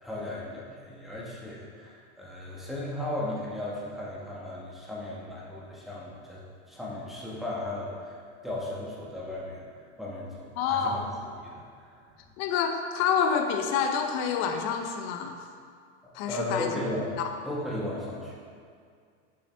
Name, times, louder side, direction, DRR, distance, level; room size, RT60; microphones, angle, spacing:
voice 1, 0.0-6.4 6.7-9.6 10.0-11.0 11.4-12.0 16.3-17.1 17.4-18.3, left 1 dB, ahead, -6 dB, 1.5 m, -36 dB
voice 2, 10.6-11.1 12.4-15.4 16.1-16.7 17.2-17.3, left 7 dB, 50° left, 5 dB, 0.7 m, -27 dB
7.3 x 5.5 x 3.4 m, 2.2 s
supercardioid pair, 125°, 35 cm